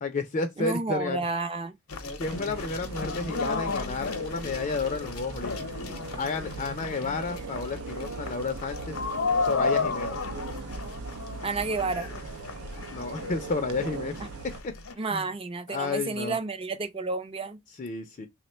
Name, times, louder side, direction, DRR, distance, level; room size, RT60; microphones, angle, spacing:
voice 1, 0.0-1.2 2.2-5.8 6.2-9.0 9.4-10.2 12.9-14.2 15.1-15.3 15.7-16.4 17.8-18.3, left 4 dB, 35° left, 0.4 m, -31 dB
voice 2, 0.6-1.7 11.4-12.1 15.0-17.6, right 3 dB, 25° right, 0.4 m, -31 dB
sound 1, 1.9-14.9, left 4 dB, 80° left, 0.7 m, -34 dB
sound 2, 2.2-14.6, right 4 dB, 85° right, 0.4 m, -40 dB
3.2 x 2.1 x 4.2 m
head